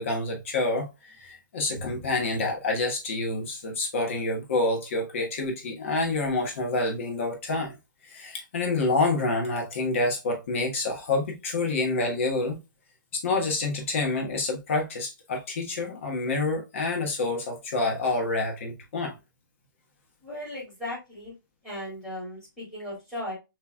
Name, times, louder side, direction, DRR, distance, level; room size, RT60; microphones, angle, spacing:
voice 1, 0.0-7.7 8.0-12.6 13.1-19.2, left 2 dB, 35° left, 1.4 m, -28 dB
voice 2, 20.2-21.3 21.6-23.3, left 1 dB, 5° left, 2.2 m, -36 dB
6.4 x 3.1 x 2.3 m
hypercardioid pair, 165°, 11 cm